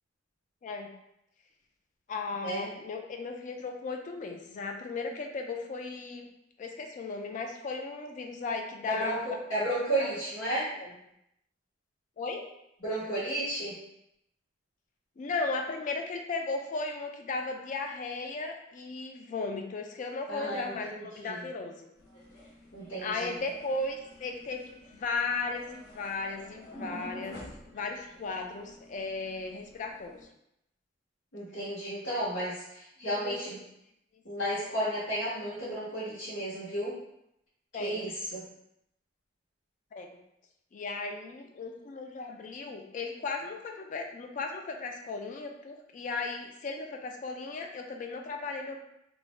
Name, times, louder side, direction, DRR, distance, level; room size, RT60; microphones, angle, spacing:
voice 1, 2.1-6.3 6.6-9.3 10.0-10.1 10.8-10.9 12.2-12.4 15.2-21.9 23.0-27.4 27.7-30.2 33.0-33.4 37.7-38.0 39.9-40.1 40.7-48.8, left 3 dB, 40° left, 3 dB, 0.3 m, -36 dB
voice 2, 8.9-10.7 12.8-13.8 20.3-21.4 22.7-23.3 31.3-33.6 34.2-36.9 37.8-38.4, right 1 dB, 80° left, -13 dB, 1.1 m, -33 dB
sound 1, 22.0-30.2, left 1 dB, 60° left, 0.9 m, -49 dB
2.5 x 2.1 x 3.1 m, 0.80 s
head